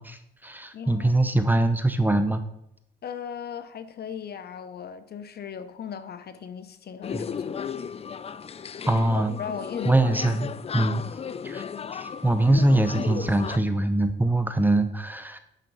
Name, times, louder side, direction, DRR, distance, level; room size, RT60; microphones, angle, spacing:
voice 1, 0.0-2.4 7.1-7.3 8.9-9.3 9.8-11.0 11.4-11.6 11.9-15.4, right 1 dB, 10° right, 0.9 m, -23 dB
voice 2, 0.7-1.2 3.0-8.0 9.1-10.1, left 7 dB, 55° left, 0.9 m, -38 dB
sound 1, 7.0-13.6, left 7 dB, 30° left, 0.4 m, -35 dB
9.3 x 5.8 x 5.5 m
cardioid pair, 90°, 20 cm